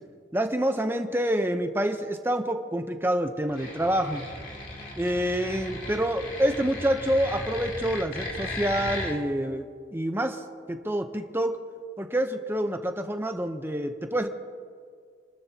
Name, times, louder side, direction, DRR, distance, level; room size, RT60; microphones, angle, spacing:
voice 1, 0.3-4.2 5.0-9.7 9.9-11.6 12.0-14.3, right 1 dB, 10° right, 6 dB, 0.9 m, -27 dB
sound 1, 3.5-9.1, left 1 dB, 50° left, 2.9 m, -36 dB
29.5 x 13.0 x 2.9 m, 2.1 s
head